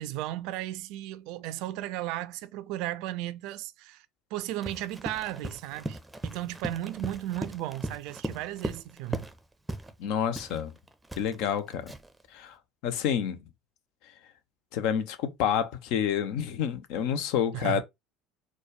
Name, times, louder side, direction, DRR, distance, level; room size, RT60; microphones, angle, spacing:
voice 1, 0.0-4.1 4.3-9.3 17.5-17.8, right 14 dB, 55° right, 0.4 m, -35 dB
Run, 4.6-9.4 9.7-10.0 10.3-12.2, right 1 dB, 10° right, 0.6 m, -38 dB
voice 2, 10.0-10.7 11.2-11.9 12.3-12.6 12.8-13.4 14.7-17.8, left 8 dB, 55° left, 0.6 m, -28 dB
4.2 x 2.3 x 4.6 m
figure-of-eight pair, 65°, 0 cm